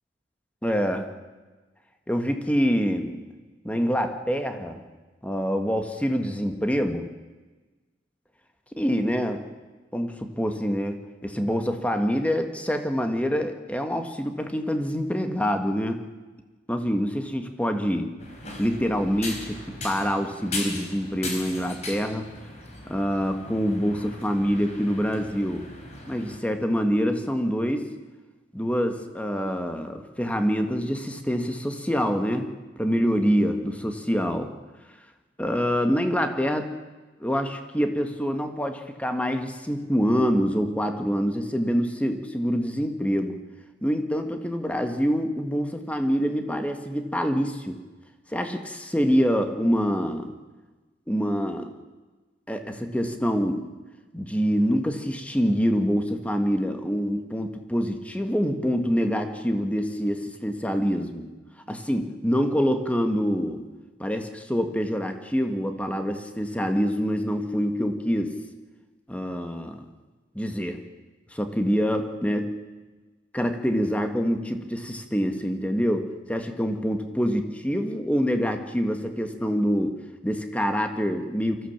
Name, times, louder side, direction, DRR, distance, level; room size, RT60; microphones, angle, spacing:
voice 1, 0.6-1.1 2.1-3.2 3.6-4.8 5.2-7.1 8.8-9.5 9.9-16.0 16.7-18.1 18.6-22.3 22.8-25.7 26.1-27.9 28.5-32.5 32.8-34.5 35.4-36.8 37.2-43.4 43.8-47.8 48.3-50.3 51.1-51.7 52.5-53.7 54.1-61.3 61.7-63.6 64.0-68.4 69.1-69.9 70.3-70.8 71.3-72.6 73.3-81.7, equal, 10° left, 6 dB, 1.7 m, -26 dB
sound 1, 18.2-26.4, left 2 dB, 40° left, 3.9 m, -38 dB
23.5 x 15.0 x 7.3 m, 1.3 s
head